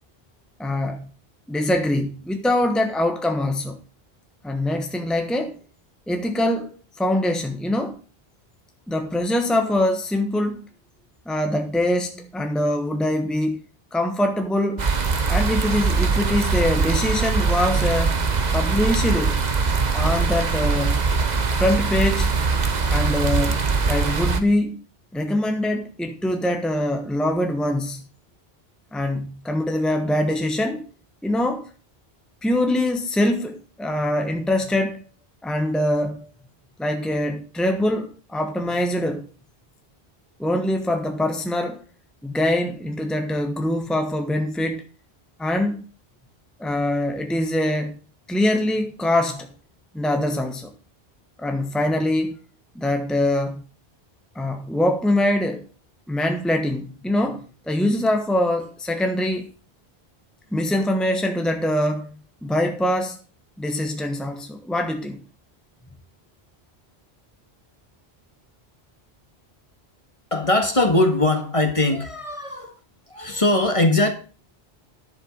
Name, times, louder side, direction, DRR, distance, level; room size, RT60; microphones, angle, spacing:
voice 1, 0.6-1.1 1.5-3.8 4.4-5.6 6.1-8.0 8.9-10.7 11.3-13.6 13.9-14.9 15.3-18.2 18.5-19.4 19.9-21.0 21.6-22.3 22.9-23.6 23.9-24.8 25.1-28.1 28.9-30.9 31.2-31.7 32.4-35.0 35.4-36.3 36.8-39.3 40.4-41.8 42.2-44.8 45.4-45.8 46.6-48.0 48.3-49.5 49.9-50.7 51.4-52.4 52.7-53.6 54.3-55.6 56.1-59.5 60.5-62.1 62.4-63.2 63.6-65.2, left 1 dB, ahead, 1.2 m, -23 dB
sound 1, 14.8-24.4, right 4 dB, 45° right, 1.1 m, -22 dB
voice 2, 70.3-72.8 73.1-74.1, left 2 dB, 30° left, 1.8 m, -20 dB
10.5 x 7.7 x 5.4 m
omnidirectional pair, 1.0 m